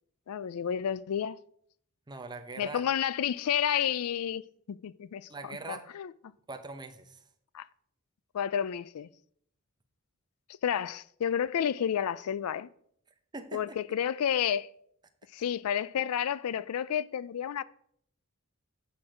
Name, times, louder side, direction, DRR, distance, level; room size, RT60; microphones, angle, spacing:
voice 1, 0.3-1.4 2.6-4.4 4.7-6.1 7.5-7.7 8.3-9.1 10.6-12.7 13.5-14.7 15.3-17.6, left 9 dB, 80° left, 0.4 m, -30 dB
voice 2, 2.1-2.8 5.3-5.9 6.5-7.2 13.3-13.8, right 3 dB, 20° right, 0.8 m, -42 dB
8.5 x 6.1 x 4.9 m
head